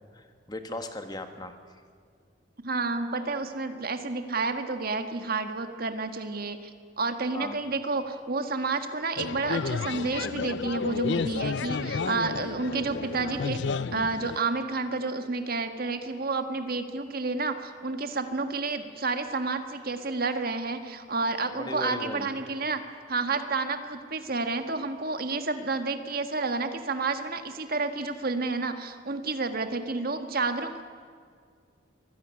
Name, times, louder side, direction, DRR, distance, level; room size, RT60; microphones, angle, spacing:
voice 1, 0.1-1.5 7.3-7.5 21.6-22.3, left 1 dB, 20° left, 7 dB, 1.6 m, -37 dB
voice 2, 2.6-6.7 7.0-13.6 13.9-22.8 23.1-30.8, right 3 dB, 50° right, 7 dB, 1.6 m, -30 dB
sound 1, 9.2-14.4, left 5 dB, 60° left, 0.5 m, -31 dB
24.0 x 15.5 x 9.7 m, 2.1 s
head